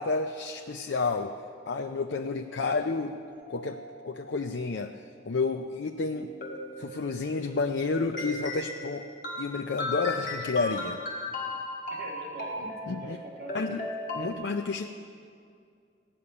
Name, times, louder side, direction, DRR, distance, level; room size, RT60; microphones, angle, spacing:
voice 1, 0.0-3.2 3.5-3.8 4.0-5.0 5.3-6.3 6.8-9.1 9.4-11.0 12.9-13.2 13.5-13.8 14.1-14.9, left 4 dB, 80° left, 5 dB, 0.5 m, -30 dB
Mallet percussion, 3.3-5.8, right 1 dB, 5° left, 4.9 m, -51 dB
sound 1, 6.1-7.4 8.1-14.3, left 2 dB, 45° left, 1.8 m, -36 dB
voice 2, 11.9-13.8 14.1-14.5, right 1 dB, 55° right, -3 dB, 2.8 m, -44 dB
16.0 x 6.9 x 9.8 m, 2.3 s
head